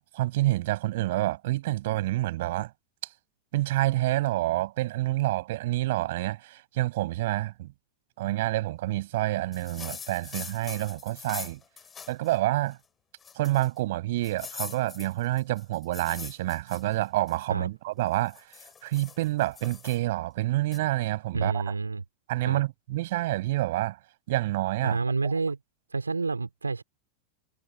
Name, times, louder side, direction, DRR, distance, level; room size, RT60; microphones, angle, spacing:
voice 1, 0.0-2.7 3.5-7.7 8.2-11.6 12.1-12.8 13.4-18.4 18.8-21.7 22.3-24.0 24.3-25.0 25.2-25.3, right 17 dB, 55° right, 5.8 m, -28 dB
sound 1, 9.5-12.4 12.7-12.8 13.2-13.8 14.2-17.4 18.0-20.0 20.7-20.8, left 7 dB, 20° left, 7.3 m, -43 dB
voice 2, 21.3-22.0 22.4-22.6 24.8-25.6 25.9-26.8, right 4 dB, 80° right, 3.5 m, -29 dB
figure-of-eight pair, 90°, 0 cm